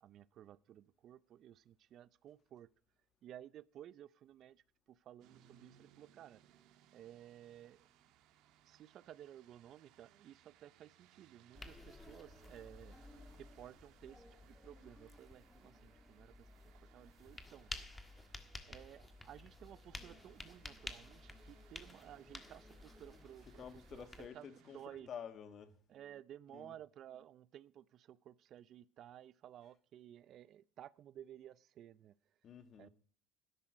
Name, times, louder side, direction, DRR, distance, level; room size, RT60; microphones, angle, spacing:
voice 1, 0.0-2.7 3.2-6.4 6.9-7.9 8.6-13.0 13.4-16.5 16.8-17.7 18.7-25.1 25.9-32.1 32.8-32.9, right 11 dB, 50° right, 0.5 m, -56 dB
sound 1, 5.2-24.8, right 11 dB, 70° right, 1.6 m, -68 dB
sound 2, 11.5-24.3, left 2 dB, 15° left, 1.5 m, -53 dB
voice 2, 23.4-25.8 26.5-26.8 32.4-32.9, left 8 dB, 45° left, 1.6 m, -50 dB
12.5 x 11.0 x 5.1 m
cardioid pair, 120°, 0 cm